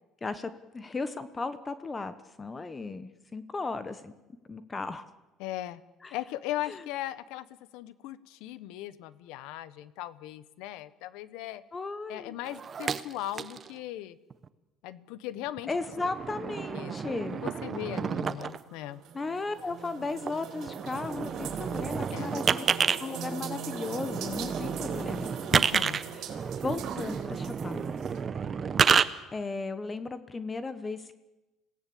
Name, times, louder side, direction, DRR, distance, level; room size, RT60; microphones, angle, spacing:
voice 1, 0.2-4.1 4.5-5.0 6.0-6.2 6.7-6.9 11.7-12.3 15.7-17.4 19.1-25.3 26.6-28.0 29.3-31.2, left 3 dB, 20° left, 12 dB, 1.0 m, -35 dB
voice 2, 5.4-5.8 6.1-7.5 7.7-11.6 12.1-14.2 14.8-15.7 16.7-19.0 22.1-22.3 25.5-26.0, left 14 dB, 80° left, 16 dB, 1.1 m, -38 dB
sound 1, 12.4-13.7 14.3-14.5 15.5-18.6 20.3-20.4 20.6-23.0 23.7-29.1, right 6 dB, 30° right, 0.9 m, -30 dB
sound 2, 18.6-28.2, right 7 dB, 60° right, 4.2 m, -41 dB
27.0 x 17.5 x 8.6 m, 1.1 s
cardioid pair, 140°, 0 cm